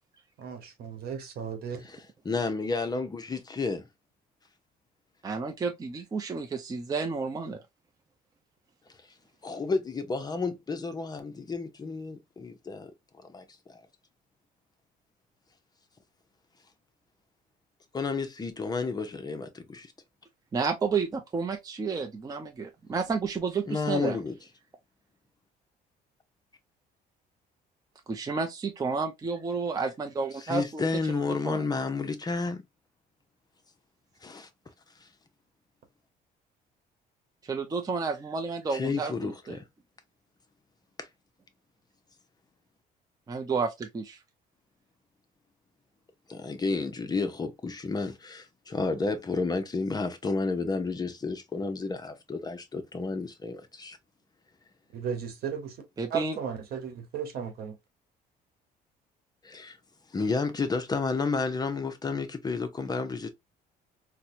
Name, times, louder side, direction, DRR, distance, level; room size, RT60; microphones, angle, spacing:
voice 1, 0.4-1.8 54.9-55.8 56.1-57.7, right 7 dB, 65° right, 1.1 m, -35 dB
voice 2, 1.8-3.8 9.4-12.9 13.3-13.8 17.9-19.9 23.7-24.3 30.4-32.6 34.2-34.5 35.0-35.1 38.7-39.6 41.0-41.1 46.3-54.0 59.4-59.8 60.1-63.3, left 4 dB, 25° left, 0.6 m, -31 dB
voice 3, 5.2-7.6 20.5-24.2 28.1-30.8 31.1-31.6 37.4-39.6 43.3-44.2 56.0-56.4, right 4 dB, 20° right, 0.5 m, -31 dB
4.3 x 2.1 x 2.6 m
cardioid pair, 110°, 17 cm